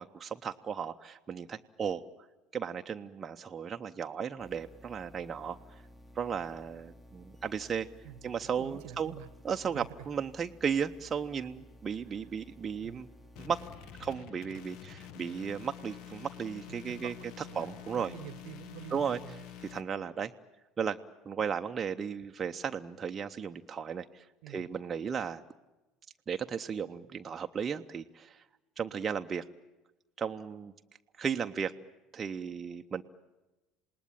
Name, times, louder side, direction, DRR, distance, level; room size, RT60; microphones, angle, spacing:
voice 1, 0.0-2.0 2.5-5.6 6.2-7.9 8.2-9.2 9.4-13.1 13.4-13.6 14.0-17.1 17.6-18.1 18.9-19.2 19.7-20.3 20.8-21.0 21.2-25.4 26.3-28.4 28.8-29.4 30.2-30.7 31.2-31.7 32.1-33.0, right 7 dB, 30° right, 5 dB, 0.8 m, -35 dB
sound 1, 4.4-14.2, equal, 20° left, 2.0 m, -55 dB
voice 2, 8.0-9.3 9.6-10.1 12.8-13.0 16.7-19.4 24.4-24.7, right 14 dB, 60° right, 18 dB, 1.0 m, -48 dB
sound 2, 13.4-19.8, left 9 dB, 55° left, 1.1 m, -48 dB
27.5 x 19.5 x 9.0 m, 1.1 s
figure-of-eight pair, 65°, 0 cm